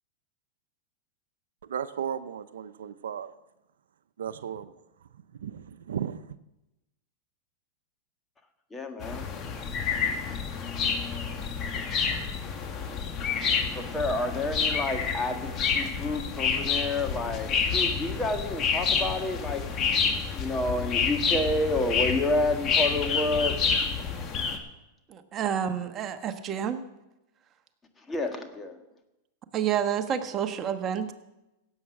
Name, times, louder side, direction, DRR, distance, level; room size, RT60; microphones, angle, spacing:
voice 1, 1.7-3.3 4.2-4.7 5.4-6.2, right 8 dB, 85° right, 12 dB, 0.7 m, -34 dB
voice 2, 8.7-9.3 13.7-19.6 20.4-23.5 28.1-28.8, left 2 dB, 15° left, 5 dB, 1.8 m, -29 dB
sound 1, 9.0-24.6, left 6 dB, 35° left, 1.9 m, -29 dB
voice 3, 25.1-26.8 29.5-31.1, right 9 dB, 30° right, 8 dB, 1.2 m, -29 dB
17.0 x 8.0 x 6.0 m, 0.96 s
hypercardioid pair, 120°, 0 cm